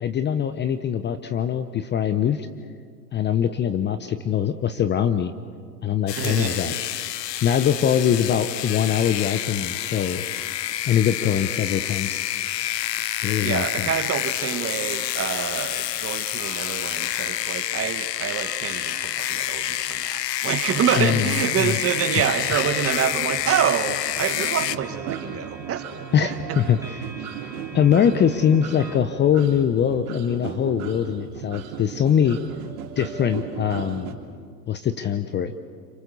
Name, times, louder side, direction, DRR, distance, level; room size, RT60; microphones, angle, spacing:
voice 1, 0.0-2.5 3.1-5.3 5.8-6.7 7.4-10.2 10.9-12.2 13.2-13.9 21.0-21.3 21.6-21.8 26.1-26.8 27.7-32.4 33.0-34.2 34.7-35.5, left 9 dB, 20° left, 10 dB, 0.8 m, -22 dB
sound 1, 6.1-24.8, left 13 dB, 75° left, 0.9 m, -28 dB
voice 2, 6.2-6.8 13.4-26.6, right 8 dB, 25° right, 9 dB, 1.6 m, -27 dB
sound 2, 16.4-29.0, right 1 dB, 5° right, 2.5 m, -45 dB
sound 3, 22.2-34.1, right 8 dB, 60° right, 3.4 m, -36 dB
27.5 x 25.5 x 6.9 m, 2.1 s
hypercardioid pair, 100°, 49 cm